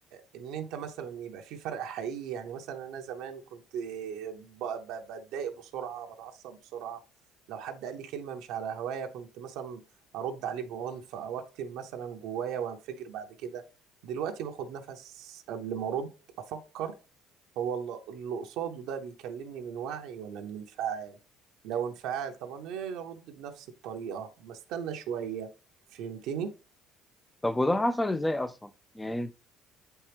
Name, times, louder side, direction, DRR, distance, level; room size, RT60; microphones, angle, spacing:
voice 1, 0.1-7.0 7.5-9.8 10.1-13.6 14.0-16.1 16.4-16.9 17.6-21.2 21.6-25.5 25.9-26.5, right 8 dB, 75° right, 0.8 m, -37 dB
voice 2, 27.4-28.7 29.0-29.3, left 1 dB, 10° left, 0.4 m, -28 dB
7.8 x 4.5 x 3.4 m
cardioid pair, 120°, 0 cm